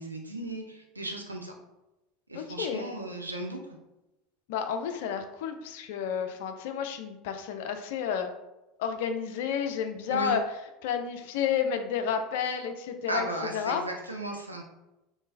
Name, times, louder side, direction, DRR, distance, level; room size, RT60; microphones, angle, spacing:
voice 1, 0.0-1.5 2.3-3.6 10.1-10.4 13.1-14.6, right 2 dB, 85° right, 1 dB, 0.5 m, -35 dB
voice 2, 2.3-2.9 4.5-8.3 8.8-10.4 10.8-13.3 13.5-13.8, left 7 dB, 60° left, 7 dB, 0.4 m, -31 dB
3.6 x 3.1 x 2.6 m, 0.95 s
figure-of-eight pair, 75°, 0 cm